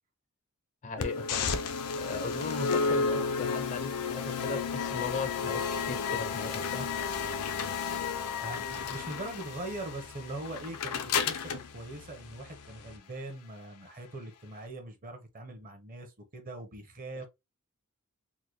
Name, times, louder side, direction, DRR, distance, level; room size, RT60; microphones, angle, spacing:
voice 1, 0.8-1.5 2.0-6.9, left 4 dB, 35° left, 0.5 m, -37 dB
sound 1, 1.0-13.0, left 5 dB, 90° left, 0.6 m, -33 dB
voice 2, 8.4-17.3, right 2 dB, 40° right, 0.8 m, -42 dB
3.8 x 2.1 x 3.0 m
head